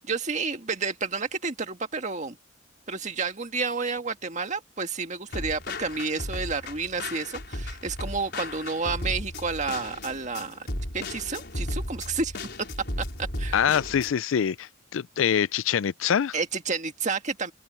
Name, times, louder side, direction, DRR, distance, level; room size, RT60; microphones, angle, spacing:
voice 1, 0.0-2.4 2.9-10.7 10.9-12.3 13.4-13.6 16.3-17.5, right 4 dB, 35° right, 1.8 m, -30 dB
sound 1, 5.3-14.1, left 1 dB, 55° left, 4.9 m, -35 dB
voice 2, 13.5-16.4, left 8 dB, 80° left, 0.4 m, -25 dB
head